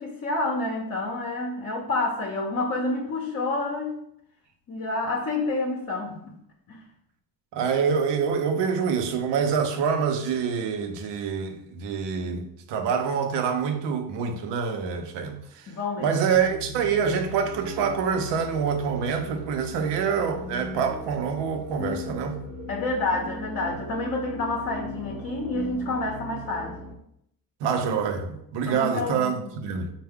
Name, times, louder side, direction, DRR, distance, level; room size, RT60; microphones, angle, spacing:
voice 1, 0.0-4.0 4.7-6.3 6.7-6.8 15.7-16.2 16.5-16.6 22.7-26.8 28.7-29.6, left 2 dB, 40° left, 0.7 m, -29 dB
voice 2, 7.5-15.7 16.0-22.4 27.6-29.9, right 6 dB, 85° right, 0.7 m, -26 dB
sound 1, 16.3-27.0, left 1 dB, ahead, 0.6 m, -38 dB
4.4 x 2.2 x 3.5 m
cardioid pair, 110°, 41 cm